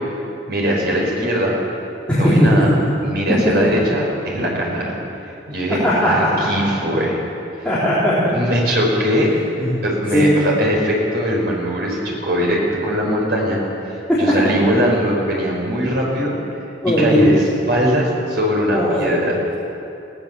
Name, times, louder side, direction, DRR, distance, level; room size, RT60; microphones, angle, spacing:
voice 1, 0.5-1.6 2.1-2.7 3.0-4.9 5.5-7.2 8.3-9.3 9.8-13.6 13.9-16.3 16.9-19.4, equal, 60° right, -2 dB, 5.3 m, -20 dB
voice 2, 2.1-2.7 5.8-6.3 7.6-8.3 9.6-9.7 10.1-10.4 14.1-14.2 16.8-17.4 18.7-19.0, equal, 5° left, -11 dB, 4.1 m, -17 dB
20.0 x 18.0 x 7.2 m, 2.7 s
head